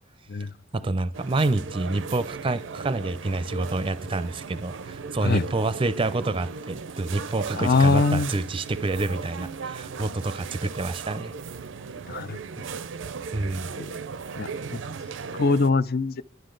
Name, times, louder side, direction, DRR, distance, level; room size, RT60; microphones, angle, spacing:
voice 1, 0.7-11.3 13.3-13.8, right 2 dB, 25° right, 0.5 m, -28 dB
sound 1, 1.1-15.7, right 5 dB, 75° right, 0.5 m, -37 dB
voice 2, 7.5-8.3 12.1-12.4 13.8-13.9 14.4-14.5 15.4-16.2, left 3 dB, 50° left, 0.5 m, -22 dB
27.0 x 11.5 x 3.9 m
head